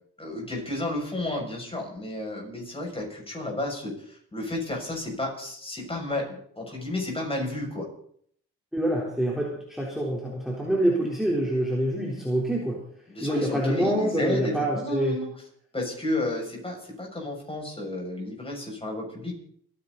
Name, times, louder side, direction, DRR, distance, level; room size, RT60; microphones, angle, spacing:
voice 1, 0.2-7.9 13.1-15.3 15.7-19.4, left 2 dB, 20° left, 0 dB, 6.8 m, -32 dB
voice 2, 8.7-12.8 13.2-15.2, right 1 dB, ahead, -4 dB, 4.0 m, -26 dB
30.0 x 10.0 x 4.1 m, 0.62 s
cardioid pair, 90°, 30 cm